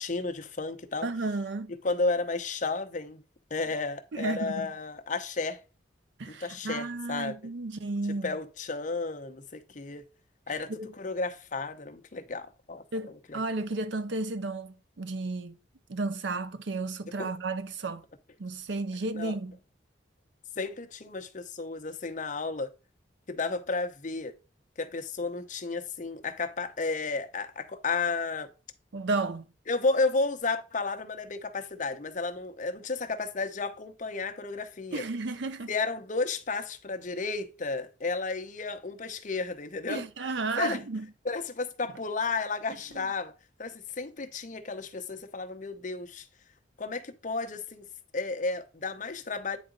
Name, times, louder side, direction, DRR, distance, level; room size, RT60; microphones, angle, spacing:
voice 1, 0.0-1.1 1.8-3.2 3.5-5.6 6.3-7.3 8.2-10.0 10.5-13.4 17.2-17.3 19.1-19.4 20.6-22.7 23.3-24.3 24.8-28.5 29.7-35.0 35.7-40.0 40.6-40.8 41.2-43.3 43.6-46.3 46.8-47.9 48.1-49.6, left 3 dB, 40° left, 0.8 m, -32 dB
voice 2, 1.0-1.7 4.1-4.7 6.2-8.3 10.8-10.9 12.9-15.6 15.9-18.0 18.4-19.6 28.9-29.5 34.9-35.7 39.9-41.1, right 3 dB, 70° right, 0.6 m, -33 dB
9.0 x 3.9 x 3.8 m
head